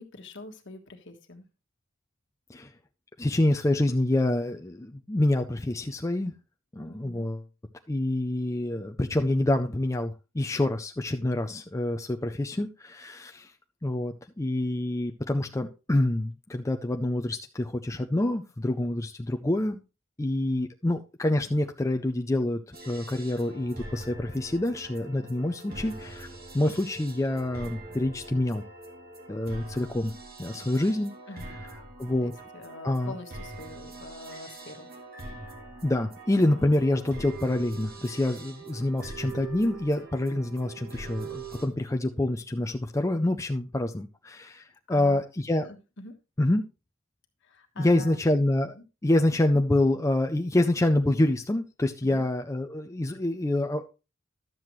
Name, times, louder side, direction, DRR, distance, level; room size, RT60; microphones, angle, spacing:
voice 1, 0.0-1.4 6.9-7.2 31.3-31.6 32.2-34.9 44.9-45.2 45.6-46.1 47.4-48.2 48.7-48.8 52.0-52.2, left 2 dB, 60° left, 6 dB, 1.5 m, -44 dB
voice 2, 3.2-6.3 6.7-7.4 7.9-13.5 13.8-19.8 20.2-22.6 22.9-26.3 26.5-28.6 29.3-30.1 30.4-31.1 32.0-32.3 32.8-33.1 35.8-44.6 44.9-45.7 46.4-46.6 47.8-48.7 49.0-53.9, left 1 dB, 15° left, 4 dB, 0.5 m, -26 dB
sound 1, 22.7-41.7, right 3 dB, 45° right, 1.9 m, -43 dB
12.0 x 7.7 x 3.1 m, 0.30 s
head